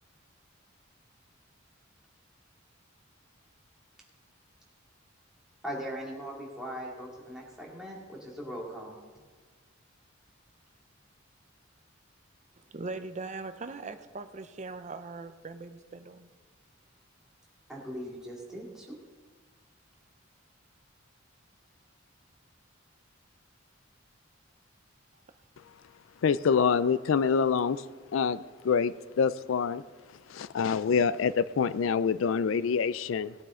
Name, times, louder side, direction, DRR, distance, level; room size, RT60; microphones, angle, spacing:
voice 1, 5.6-9.0 17.7-19.0, equal, 5° right, -4 dB, 2.4 m, -40 dB
voice 2, 12.7-16.3, right 3 dB, 35° right, 9 dB, 0.6 m, -40 dB
voice 3, 26.2-27.8 28.1-29.8 30.3-33.3, left 6 dB, 75° left, 16 dB, 0.4 m, -26 dB
17.5 x 8.9 x 3.8 m, 1.4 s
head